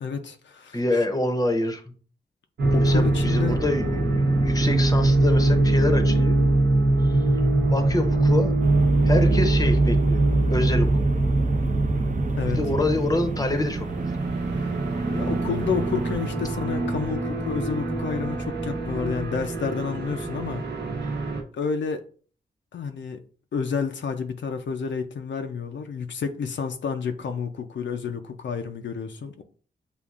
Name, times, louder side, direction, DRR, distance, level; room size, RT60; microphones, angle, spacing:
voice 1, 0.0-0.8 2.7-3.6 12.4-12.6 14.5-14.7 15.1-20.6 21.6-22.0 22.7-23.2 23.5-29.4, left 6 dB, 75° left, 0.5 m, -30 dB
voice 2, 0.7-1.9 2.8-6.4 7.0-7.2 7.7-8.6 9.0-10.9 12.5-14.1, left 2 dB, 20° left, 0.7 m, -26 dB
sound 1, 2.6-21.4, right 2 dB, 65° right, 0.9 m, -23 dB
sound 2, 8.6-16.3, right 4 dB, 45° right, 0.5 m, -32 dB
6.8 x 2.4 x 2.4 m
cardioid pair, 60°, 19 cm